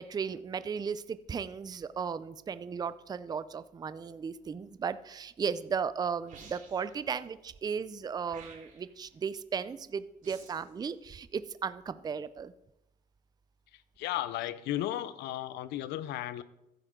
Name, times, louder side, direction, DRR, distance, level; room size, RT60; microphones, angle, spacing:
voice 1, 0.0-12.5, right 6 dB, 25° right, 15 dB, 0.5 m, -35 dB
sound 1, 6.3-7.0 8.3-9.0 10.2-10.7, right 5 dB, 50° right, 3.0 m, -52 dB
voice 2, 14.0-16.4, left 13 dB, 85° left, 15 dB, 0.7 m, -34 dB
15.0 x 9.1 x 3.8 m, 0.87 s
cardioid pair, 110°, 17 cm